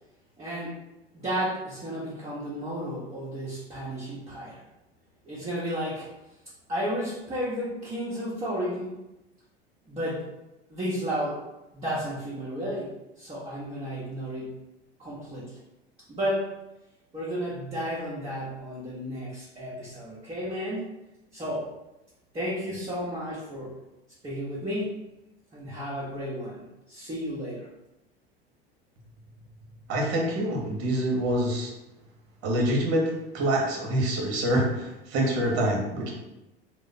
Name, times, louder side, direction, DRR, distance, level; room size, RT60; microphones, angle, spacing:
voice 1, 0.4-0.7 1.1-4.6 5.2-6.1 6.7-8.9 9.9-10.3 10.7-11.4 11.7-12.9 13.2-14.5 15.0-15.6 16.1-16.5 17.1-21.0 21.3-21.7 22.3-23.7 24.2-24.9 25.5-27.7, equal, 15° right, -9 dB, 1.0 m, -32 dB
voice 2, 29.9-31.7 32.4-36.1, right 1 dB, 45° right, -1 dB, 1.1 m, -26 dB
3.1 x 2.0 x 4.0 m, 0.95 s
figure-of-eight pair, 75°, 31 cm